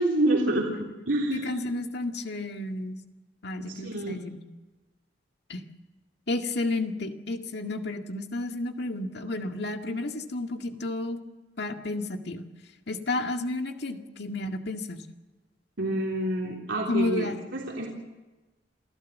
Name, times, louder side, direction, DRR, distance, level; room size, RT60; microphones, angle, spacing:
voice 1, 0.0-1.6 3.6-4.1 15.8-17.9, right 1 dB, 90° right, -2 dB, 3.5 m, -28 dB
voice 2, 1.3-3.0 3.4-4.4 5.5-5.6 6.3-11.2 11.6-12.4 12.9-15.0 16.9-17.3, left 2 dB, 60° left, 4 dB, 2.0 m, -31 dB
27.5 x 15.5 x 7.5 m, 1.2 s
head